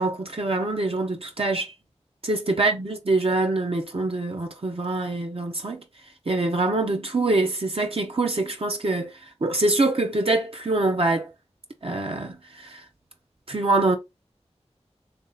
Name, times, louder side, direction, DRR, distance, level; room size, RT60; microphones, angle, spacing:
voice 1, 0.0-1.7 2.2-5.8 6.3-11.3 11.8-12.8 13.5-14.0, right 2 dB, 55° right, 0.7 m, -24 dB
3.1 x 2.7 x 3.7 m
wide cardioid pair, 45°, 12 cm